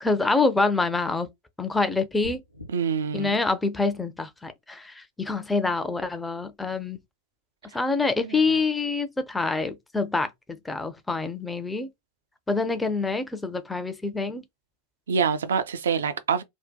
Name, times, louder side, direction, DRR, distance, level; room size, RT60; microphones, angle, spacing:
voice 1, 0.0-1.3 1.6-2.4 3.1-7.0 7.7-11.9 12.5-14.4, left 3 dB, 10° left, 0.4 m, -26 dB
sound 1, 2.2-2.7, left 2 dB, 85° left, 0.4 m, -40 dB
voice 2, 2.7-3.4 8.2-8.6 15.1-16.4, right 6 dB, 65° right, 0.3 m, -26 dB
2.6 x 2.1 x 2.2 m
figure-of-eight pair, 90°, 0 cm